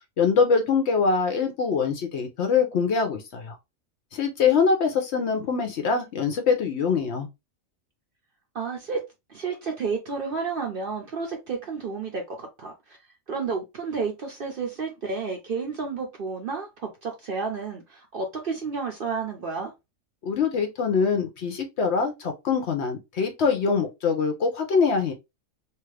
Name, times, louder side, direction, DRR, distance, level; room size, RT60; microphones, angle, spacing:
voice 1, 0.2-3.6 4.1-7.3 20.2-25.1, left 5 dB, 65° left, 0.8 m, -24 dB
voice 2, 8.5-9.0 9.3-13.0 13.3-19.7, right 4 dB, 55° right, 0.7 m, -31 dB
2.8 x 2.4 x 3.1 m
omnidirectional pair, 1.4 m